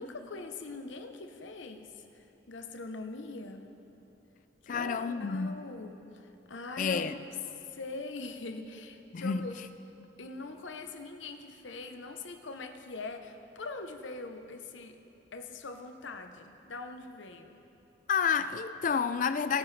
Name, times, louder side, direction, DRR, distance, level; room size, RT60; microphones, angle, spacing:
voice 1, 0.0-3.7 4.6-7.3 7.7-9.6 10.2-15.0 15.3-17.6, left 3 dB, 80° left, 0.8 m, -42 dB
voice 2, 4.7-5.6 6.8-7.1 9.1-9.5 18.1-19.6, left 6 dB, 45° left, 0.4 m, -29 dB
21.5 x 8.8 x 3.3 m
head